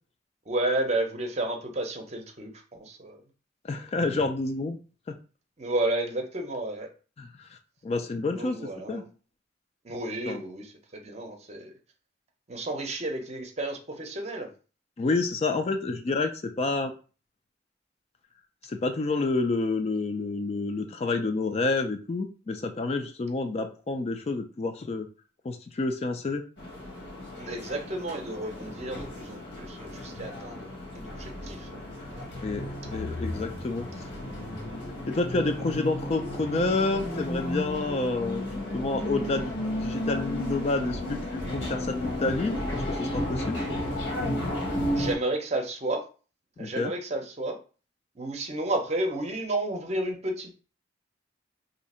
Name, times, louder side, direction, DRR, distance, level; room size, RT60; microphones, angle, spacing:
voice 1, 0.5-3.2 5.6-6.9 8.3-9.1 9.8-11.7 12.5-14.5 27.4-31.8 32.1-32.3 44.9-46.0 46.6-47.6 48.2-50.5, right 1 dB, 35° right, 4 dB, 0.6 m, -32 dB
voice 2, 3.6-4.8 7.2-7.6 7.8-8.6 8.9-9.0 10.3-10.4 15.0-16.3 16.6-16.9 18.6-25.1 25.4-26.4 32.4-34.1 35.1-38.4 38.7-39.5 39.8-43.6 46.6-46.9, left 3 dB, 35° left, 6 dB, 0.3 m, -29 dB
sound 1, 26.6-45.1, left 1 dB, 70° left, 1.0 m, -33 dB
2.7 x 2.5 x 4.2 m, 0.36 s
head